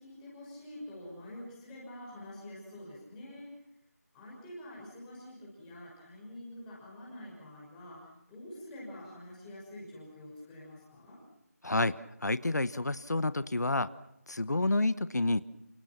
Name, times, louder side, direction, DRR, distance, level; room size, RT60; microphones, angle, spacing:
voice 1, 0.0-3.5 4.1-11.2, left 1 dB, 5° left, -6 dB, 5.9 m, -47 dB
voice 2, 11.6-13.9 14.3-15.4, left 2 dB, 85° left, 15 dB, 1.2 m, -29 dB
29.0 x 27.5 x 6.0 m, 0.86 s
figure-of-eight pair, 175°, 9 cm